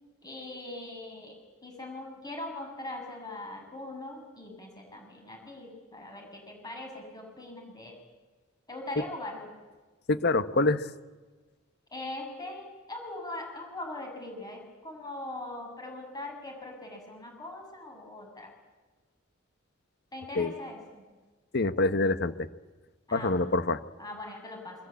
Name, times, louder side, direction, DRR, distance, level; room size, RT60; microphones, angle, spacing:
voice 1, 0.2-8.0 8.7-9.5 11.9-18.5 20.1-20.8 23.1-23.4 24.0-24.8, left 2 dB, 20° left, 2 dB, 7.3 m, -41 dB
voice 2, 10.1-10.9 20.3-20.5 21.5-22.5 23.1-23.8, left 2 dB, 55° left, 12 dB, 1.3 m, -26 dB
28.0 x 23.5 x 8.5 m, 1.3 s
head